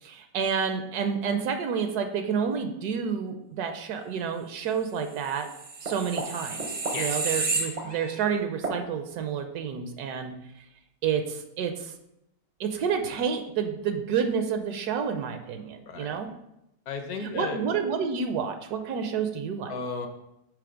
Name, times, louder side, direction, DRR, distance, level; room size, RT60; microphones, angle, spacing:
voice 1, 0.0-5.5 5.8-10.3 11.0-11.9 12.6-16.3 17.2-19.8, right 6 dB, 75° right, 7 dB, 1.1 m, -29 dB
sound 1, 5.3-8.3 8.6-8.8, right 3 dB, 45° right, 0.5 m, -31 dB
voice 2, 15.9-16.2 16.9-17.6 19.7-20.1, left 4 dB, 65° left, 6 dB, 1.1 m, -34 dB
6.8 x 3.5 x 5.0 m, 0.85 s
omnidirectional pair, 1.8 m